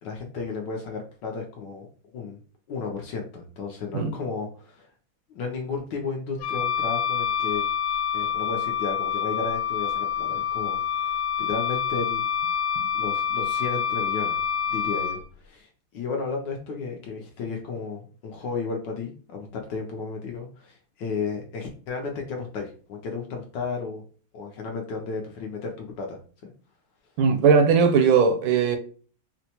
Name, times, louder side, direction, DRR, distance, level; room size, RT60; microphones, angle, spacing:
voice 1, 0.0-1.9 2.1-2.4 2.7-4.9 5.3-7.6 8.1-12.2 12.9-14.4 14.7-24.0 24.3-26.5, left 4 dB, 70° left, 1.1 m, -33 dB
Wind instrument woodwind instrument, 6.4-15.2, left 8 dB, 90° left, 1.5 m, -27 dB
voice 2, 27.2-28.8, right 6 dB, 80° right, 1.3 m, -19 dB
4.3 x 2.1 x 2.8 m
omnidirectional pair, 2.3 m